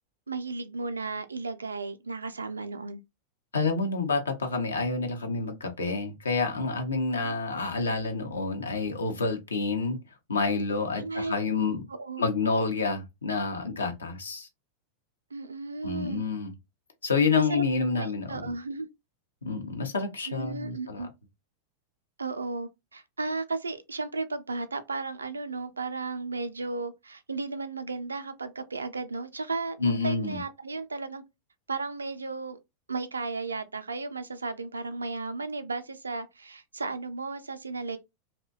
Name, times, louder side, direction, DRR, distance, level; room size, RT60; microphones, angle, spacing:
voice 1, 0.3-3.0 7.2-7.3 11.0-11.3 11.9-12.3 15.3-16.2 17.4-17.6 17.9-18.9 20.3-21.1 22.2-31.2 31.7-32.6 32.9-38.0, right 3 dB, 75° right, 0.3 m, -34 dB
voice 2, 3.5-10.0 10.3-11.9 12.2-14.5 15.8-16.5 17.0-18.5 19.4-21.1 29.8-30.4, left 4 dB, 75° left, 0.6 m, -28 dB
2.6 x 2.1 x 2.2 m
figure-of-eight pair, 90°, 0 cm